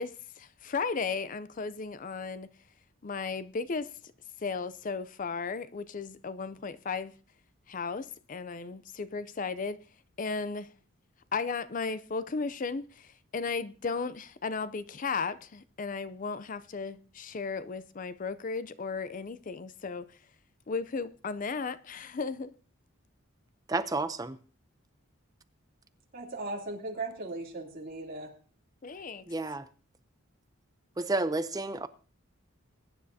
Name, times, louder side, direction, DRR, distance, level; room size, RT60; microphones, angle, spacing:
voice 1, 0.0-2.5 3.0-3.9 4.4-7.1 7.7-9.8 10.2-10.7 11.3-20.1 20.7-22.5 28.8-29.2, left 4 dB, 40° left, 0.5 m, -35 dB
voice 2, 23.7-24.4 29.3-29.7 31.0-31.9, right 2 dB, 15° right, 0.5 m, -31 dB
voice 3, 26.1-28.3, right 2 dB, 45° right, 3.0 m, -37 dB
21.5 x 9.9 x 2.8 m
head